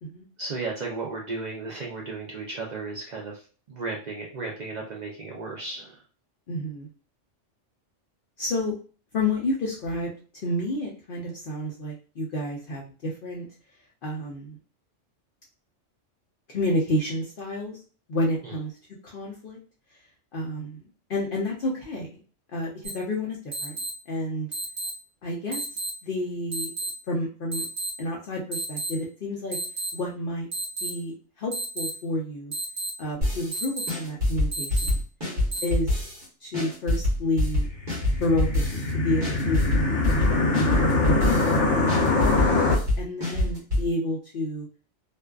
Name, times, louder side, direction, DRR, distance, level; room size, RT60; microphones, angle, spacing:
voice 1, 0.4-6.0 18.4-18.6, right 3 dB, 65° right, -1 dB, 0.4 m, -34 dB
voice 2, 6.5-6.9 8.4-8.7 9.1-10.1 10.4-13.5 14.0-14.6 16.5-17.8 18.1-18.7 19.0-19.6 20.3-20.8 21.1-22.1 22.5-24.5 25.2-25.6 26.0-26.7 27.1-27.7 28.0-29.6 29.9-30.5 30.8-32.5 33.0-35.0 35.6-35.9 36.4-37.7 38.2-42.5 43.0-44.7, left 1 dB, 60° left, -2 dB, 0.6 m, -30 dB
sound 1, 22.8-22.9 23.5-23.9 24.5-24.9 25.5-25.9 26.5-26.9 27.5-27.9 28.5-28.9 29.5-29.9 30.5-30.9 31.5-31.9 32.5-32.9 33.5-33.9 34.5-34.9 35.5-35.6, right 3 dB, 20° right, 0.8 m, -31 dB
sound 2, 33.2-33.6 33.9-36.2 36.5-38.9 39.2-41.6 41.9-43.9, left 1 dB, 45° right, 1.1 m, -25 dB
sound 3, 37.6-42.8, left 2 dB, 75° left, 1.0 m, -23 dB
2.5 x 2.3 x 2.2 m, 0.37 s
omnidirectional pair, 1.3 m